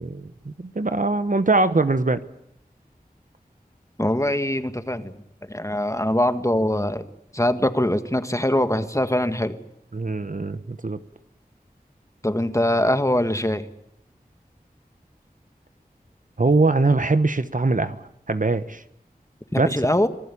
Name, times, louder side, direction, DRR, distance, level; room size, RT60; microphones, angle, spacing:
voice 1, 0.0-2.2 9.9-11.0 16.4-18.8 19.6-19.7, right 3 dB, 55° right, 12 dB, 1.1 m, -22 dB
voice 2, 4.0-5.1 5.4-7.0 7.3-9.6 12.2-13.7 19.5-20.1, left 1 dB, 20° left, 9 dB, 1.7 m, -22 dB
26.0 x 19.0 x 8.6 m, 0.75 s
wide cardioid pair, 45°, 16 cm